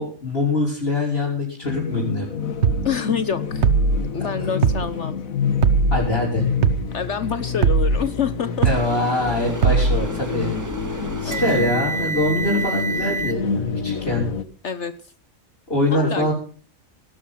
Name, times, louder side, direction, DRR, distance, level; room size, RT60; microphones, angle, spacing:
voice 1, 0.0-2.3 4.4-4.5 5.9-6.4 8.6-10.5 11.2-14.3 15.7-16.3, left 2 dB, 45° left, -6 dB, 6.1 m, -23 dB
sound 1, 1.6-14.4, left 5 dB, 80° left, 1.7 m, -28 dB
sound 2, 2.6-2.9 3.6-4.0 4.6-4.9 5.6-6.0 6.6-6.9 7.6-8.0 8.6-8.9 9.6-10.0, right 5 dB, 55° right, 1.2 m, -18 dB
voice 2, 2.8-3.7 4.1-5.2 6.9-8.7 11.2-11.6 14.6-14.9 15.9-16.3, left 7 dB, 60° left, 13 dB, 1.2 m, -26 dB
sound 3, 8.6-13.3, right 3 dB, 15° right, 0.9 m, -30 dB
18.0 x 12.5 x 5.8 m, 0.40 s
omnidirectional pair, 1.4 m